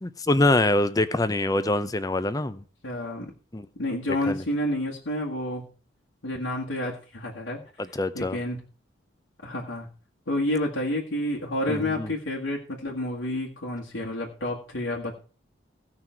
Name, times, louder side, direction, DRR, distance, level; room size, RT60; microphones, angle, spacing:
voice 1, 0.0-2.6 3.5-3.7 4.3-4.4 7.9-8.4 11.7-12.1, left 2 dB, 20° left, 0.6 m, -24 dB
voice 2, 2.8-3.3 3.8-5.6 6.2-7.6 8.1-8.6 9.4-9.9 10.3-15.2, left 1 dB, 80° left, 2.0 m, -29 dB
16.5 x 6.2 x 4.5 m
head